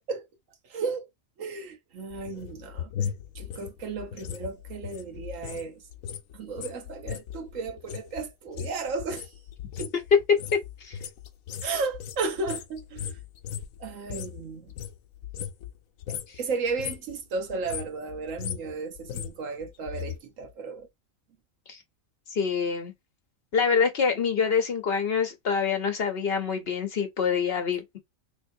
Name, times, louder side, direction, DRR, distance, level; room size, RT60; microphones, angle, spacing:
voice 1, 0.6-1.1 1.4-2.9 3.3-5.8 6.3-9.3 9.8-9.9 11.6-13.2 13.8-14.7 16.4-20.9, right 4 dB, 75° right, 1.2 m, -34 dB
sound 1, 2.1-5.7 5.9-14.4 14.7-15.8 16.0-16.4 16.7-17.1 17.5-20.2 20.4-20.5, left 9 dB, 85° left, 1.0 m, -37 dB
voice 2, 10.1-11.0 21.7-21.8 22.3-22.9 23.5-28.0, left 6 dB, 55° left, 0.9 m, -25 dB
3.4 x 3.0 x 2.6 m
omnidirectional pair, 1.4 m